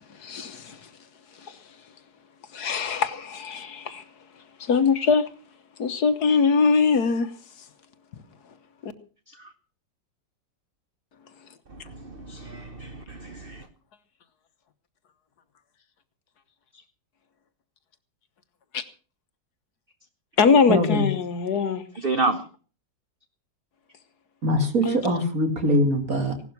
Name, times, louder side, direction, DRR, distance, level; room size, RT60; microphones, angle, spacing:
voice 1, 0.1-0.9 1.4-1.6 2.5-4.0 4.6-5.3 5.8-7.3 8.8-8.9 18.7-18.8 20.4-21.8 24.8-25.0, left 5 dB, 65° left, 12 dB, 1.6 m, -22 dB
voice 2, 11.7-13.7 22.0-22.4, right 3 dB, 35° right, 9 dB, 1.2 m, -30 dB
voice 3, 20.7-21.1 24.4-26.5, equal, 50° right, 7 dB, 3.0 m, -23 dB
17.5 x 12.0 x 5.9 m, 0.38 s
omnidirectional pair, 1.9 m